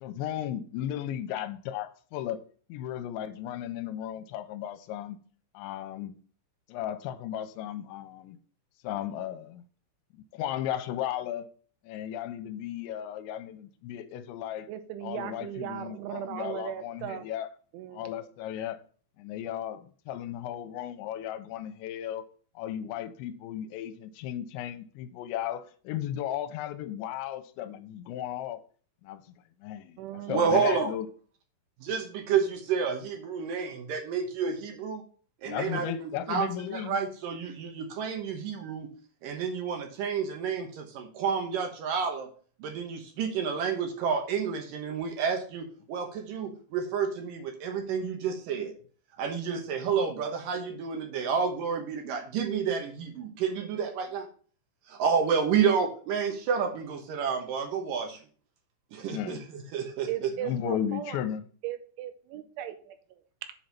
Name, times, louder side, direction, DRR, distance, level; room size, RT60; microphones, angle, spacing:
voice 1, 0.0-2.4 2.7-5.2 5.5-6.2 6.7-8.4 8.8-9.6 10.1-11.5 11.8-14.7 15.0-17.5 17.9-18.8 19.2-22.3 22.6-28.6 29.0-29.2 29.6-30.0 30.3-31.1 35.5-37.0 59.1-59.4 60.4-61.4, left 11 dB, 85° left, 2.9 m, -35 dB
voice 2, 14.7-17.3 17.7-18.3 30.0-30.7 60.1-61.2 61.6-63.5, right 12 dB, 90° right, 3.3 m, -38 dB
voice 3, 30.3-30.9 31.8-35.0 35.4-38.9 39.2-42.3 42.6-48.7 49.2-54.3 54.9-58.2 58.9-60.3, right 6 dB, 70° right, 2.1 m, -30 dB
7.7 x 5.3 x 5.8 m
omnidirectional pair, 5.4 m